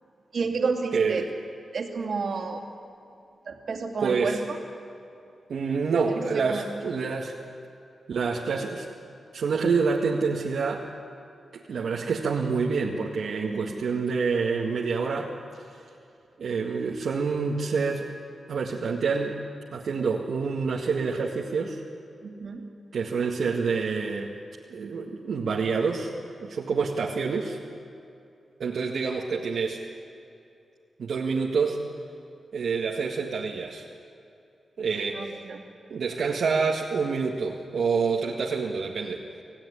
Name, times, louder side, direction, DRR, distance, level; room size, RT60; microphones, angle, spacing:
voice 1, 0.3-1.2 1.7-2.6 3.4-4.6 6.1-6.7 13.4-13.7 22.2-22.7 35.1-35.7, right 4 dB, 60° right, 2 dB, 2.7 m, -31 dB
voice 2, 0.9-1.3 4.0-4.4 5.5-7.4 8.1-8.9 9.3-10.9 11.5-15.3 16.4-18.1 18.5-19.4 19.7-21.8 22.9-24.4 24.7-26.1 26.4-27.6 28.6-29.8 31.0-31.8 32.5-33.8 34.8-35.3 35.9-39.2, right 5 dB, 75° right, -2 dB, 1.8 m, -27 dB
26.0 x 16.0 x 10.0 m, 2.6 s
wide cardioid pair, 130°, 0 cm